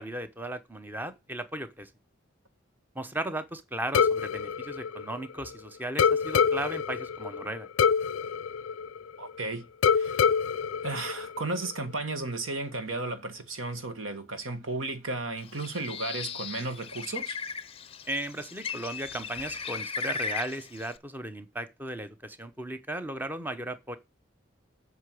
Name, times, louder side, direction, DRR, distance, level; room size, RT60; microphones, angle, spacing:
voice 1, 0.0-1.9 2.9-7.7 18.1-24.0, right 1 dB, 10° right, 0.9 m, -36 dB
sound 1, 3.9-5.5 6.0-9.4 9.8-11.8, left 6 dB, 85° left, 0.4 m, -26 dB
voice 2, 9.2-10.3 10.8-17.4, right 2 dB, 90° right, 1.7 m, -34 dB
Bird, 15.4-21.0, left 5 dB, 30° left, 0.6 m, -37 dB
8.1 x 5.9 x 7.7 m
head